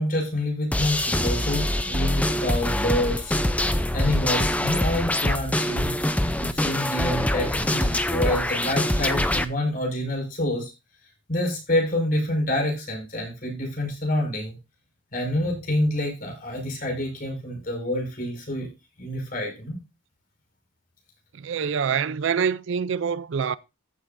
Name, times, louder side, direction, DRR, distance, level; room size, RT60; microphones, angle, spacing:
voice 1, 0.0-3.4 3.9-10.7 11.3-14.6 15.1-18.7 19.0-19.8, left 1 dB, 40° left, 5.5 m, -27 dB
sound 1, 0.7-9.5, left 1 dB, 5° left, 0.5 m, -24 dB
voice 2, 21.3-23.6, right 7 dB, 60° right, 0.4 m, -25 dB
14.5 x 7.8 x 2.6 m
head